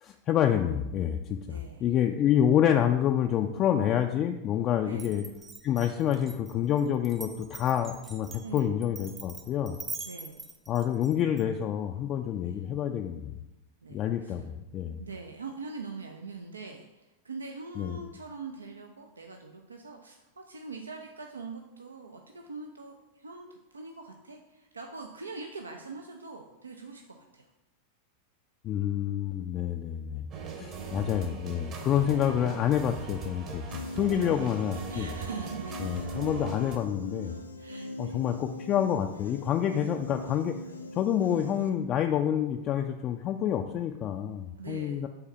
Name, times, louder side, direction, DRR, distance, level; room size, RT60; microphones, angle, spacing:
voice 1, 0.0-5.2 5.6-9.8 10.7-13.3 13.9-15.0 17.8-18.0 28.6-30.3 30.6-35.1 35.8-37.4 38.0-40.6 40.9-45.1, left 10 dB, 35° left, 4 dB, 0.4 m, -28 dB
voice 2, 1.5-1.8 4.9-5.2 8.4-8.7 10.0-10.5 12.4-12.6 13.8-14.5 15.0-27.5 30.8-31.1 34.2-36.0 37.6-38.2 44.6-45.0, right 4 dB, 75° right, 3 dB, 0.5 m, -43 dB
Glass, 5.0-11.4, right 4 dB, 20° right, 0.7 m, -43 dB
sound 1, 30.3-36.8, right 5 dB, 35° right, 1.1 m, -39 dB
Piano, 33.7-41.7, left 1 dB, 85° left, 0.6 m, -41 dB
5.7 x 3.9 x 5.5 m, 0.98 s
figure-of-eight pair, 90°, 0 cm